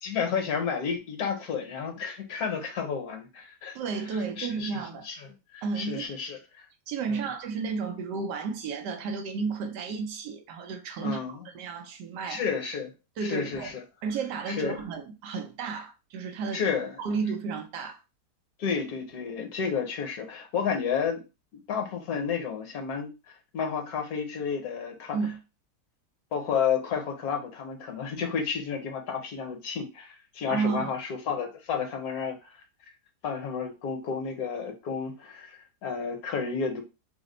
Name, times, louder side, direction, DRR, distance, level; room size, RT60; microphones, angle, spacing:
voice 1, 0.0-3.8 4.1-4.7 5.0-5.2 5.5-6.7 7.1-7.3 11.0-11.4 12.3-12.9 13.2-13.8 14.5-14.8 16.5-17.0 18.6-21.2 21.5-23.1 23.5-25.2 26.3-32.6 33.2-36.8, left 6 dB, 65° left, 1.1 m, -31 dB
voice 2, 3.7-5.2 5.6-6.1 6.9-12.4 13.2-13.7 14.0-16.6 17.0-18.0 25.1-25.4 30.5-30.9, right 5 dB, 85° right, 1.3 m, -32 dB
3.3 x 2.1 x 3.8 m
omnidirectional pair, 1.8 m